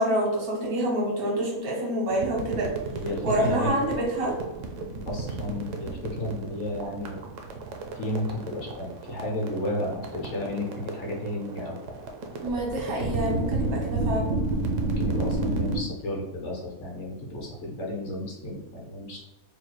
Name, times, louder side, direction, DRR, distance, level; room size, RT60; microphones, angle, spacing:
voice 1, 0.0-2.7 3.2-4.3 12.4-14.4, right 1 dB, 85° right, -2 dB, 1.7 m, -27 dB
sound 1, 2.1-15.8, right 3 dB, 65° right, 0.9 m, -32 dB
voice 2, 3.0-3.7 5.1-7.2 8.0-11.8 14.8-19.2, left 1 dB, 55° left, -1 dB, 1.2 m, -32 dB
3.7 x 2.2 x 4.5 m, 0.99 s
omnidirectional pair, 1.5 m